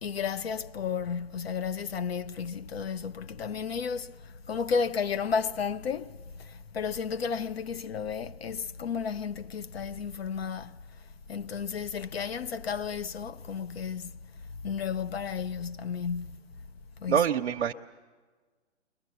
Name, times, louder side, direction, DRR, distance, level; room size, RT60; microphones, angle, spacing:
voice 1, 0.0-10.7 11.3-14.1 14.6-16.4 17.0-17.3, left 6 dB, 55° left, 0.8 m, -33 dB
voice 2, 17.1-17.7, right 8 dB, 65° right, 0.8 m, -25 dB
30.0 x 22.5 x 6.9 m
hypercardioid pair, 150°, 36 cm